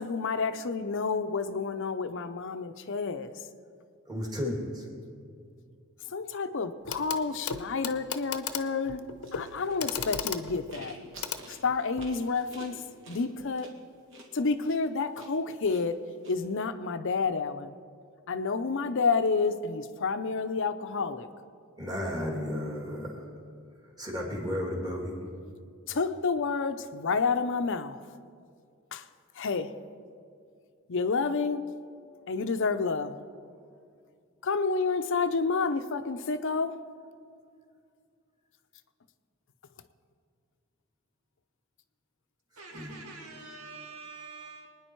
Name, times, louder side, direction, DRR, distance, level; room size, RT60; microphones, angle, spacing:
voice 1, 0.0-3.3 6.1-9.0 9.3-11.0 11.5-13.7 14.3-16.0 16.3-17.8 18.3-21.3 25.9-28.0 28.9-29.0 29.3-29.7 30.9-31.6 32.3-33.2 34.4-36.8, left 4 dB, 60° left, 10 dB, 0.6 m, -29 dB
voice 2, 4.1-4.9 21.8-23.3 24.0-25.2 42.7-43.0, left 1 dB, 20° right, 0 dB, 2.4 m, -33 dB
Clock, 6.9-7.2 7.5-12.2 13.4-13.5, left 7 dB, 90° left, 0.8 m, -36 dB
sound 1, 9.2-16.3, right 2 dB, 60° right, 2.2 m, -51 dB
voice 3, 42.6-44.7, right 4 dB, 85° right, 1 dB, 2.2 m, -45 dB
24.0 x 9.8 x 4.6 m, 2.3 s
head